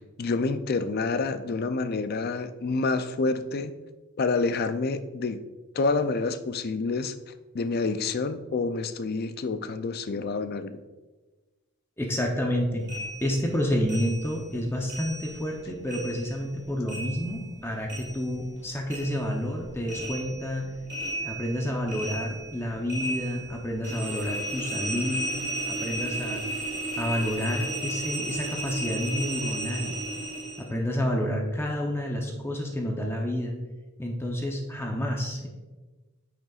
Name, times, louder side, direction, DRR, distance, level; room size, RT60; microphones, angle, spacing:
voice 1, 0.0-3.7 4.2-5.4 5.7-7.1 7.5-10.8, left 3 dB, 45° left, 11 dB, 0.4 m, -28 dB
voice 2, 12.0-12.9 13.2-20.7 21.2-25.3 25.7-26.4 27.0-30.0 30.6-33.6 34.0-35.5, equal, 10° left, 0 dB, 0.7 m, -29 dB
sound 1, 12.9-15.6 15.9-18.6 18.9-30.7, right 1 dB, 50° right, 2.1 m, -34 dB
8.7 x 6.5 x 2.4 m, 1.2 s
head